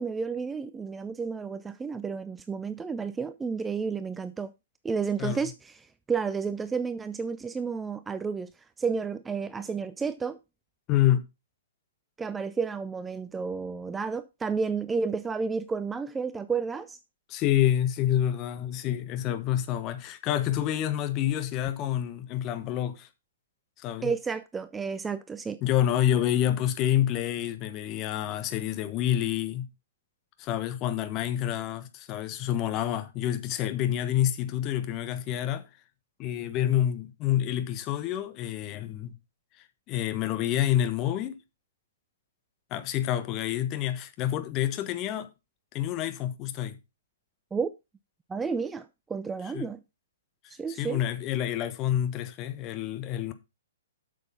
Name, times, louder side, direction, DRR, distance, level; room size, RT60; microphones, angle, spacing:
voice 1, 0.0-4.5 4.8-8.5 8.8-10.4 12.2-17.0 24.0-25.6 47.5-47.7 48.3-49.8 50.5-51.0, right 5 dB, 10° right, 0.4 m, -31 dB
voice 2, 10.9-11.2 17.3-23.1 23.8-24.1 25.6-29.7 30.4-35.6 36.2-39.1 39.9-41.4 42.7-45.3 45.7-46.8 49.5-49.7 50.8-53.3, left 11 dB, 30° left, 1.3 m, -28 dB
8.2 x 6.6 x 5.5 m
figure-of-eight pair, 115°, 0 cm